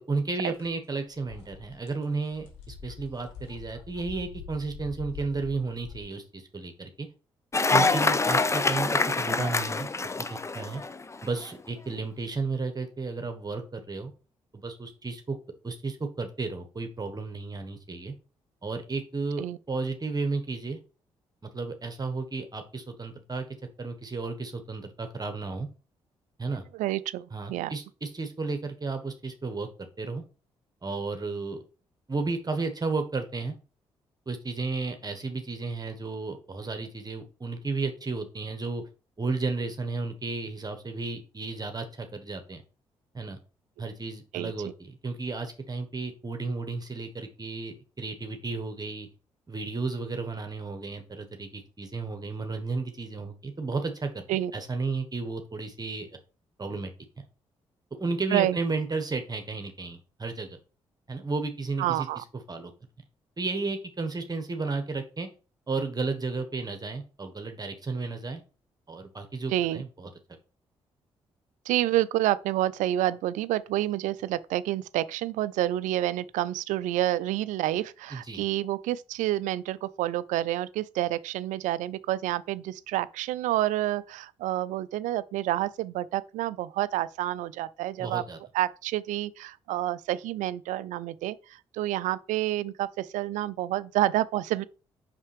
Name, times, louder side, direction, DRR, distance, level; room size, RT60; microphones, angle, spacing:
voice 1, 0.1-7.1 7.7-9.9 10.2-10.8 11.2-14.1 14.5-15.4 15.6-18.1 18.6-20.8 21.5-23.5 23.8-25.7 26.4-26.6 27.3-30.2 30.8-31.6 32.1-33.6 34.3-38.8 39.2-42.6 43.1-43.4 43.8-49.1 49.5-56.1 56.6-56.9 57.2-57.3 58.0-60.6 61.1-62.7 63.4-65.3 65.7-68.4 68.9-70.1 78.1-78.4 88.0-88.4, right 3 dB, 30° right, 1.2 m, -33 dB
sound 1, 0.5-0.7 1.0-6.0, left 6 dB, 80° left, 1.5 m, -45 dB
Cheering / Applause, 7.5-11.2, left 3 dB, 20° left, 0.5 m, -25 dB
voice 2, 7.7-8.0 19.4-19.6 26.7-27.7 44.3-44.5 54.3-54.5 58.3-58.6 61.8-62.2 69.5-69.8 71.7-88.2 88.5-94.6, right 14 dB, 65° right, 0.4 m, -29 dB
5.8 x 5.3 x 3.3 m
hypercardioid pair, 40°, 14 cm